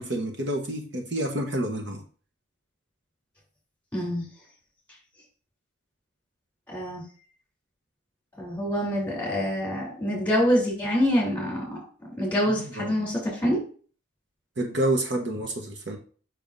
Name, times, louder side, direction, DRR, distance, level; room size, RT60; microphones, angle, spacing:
voice 1, 0.0-2.0 12.8-13.1 14.6-16.0, right 1 dB, 60° right, 3 dB, 1.0 m, -28 dB
voice 2, 3.9-4.2 6.7-7.0 8.4-11.8 12.2-13.6, equal, 10° left, -3 dB, 3.3 m, -26 dB
6.9 x 5.9 x 2.6 m, 0.41 s
head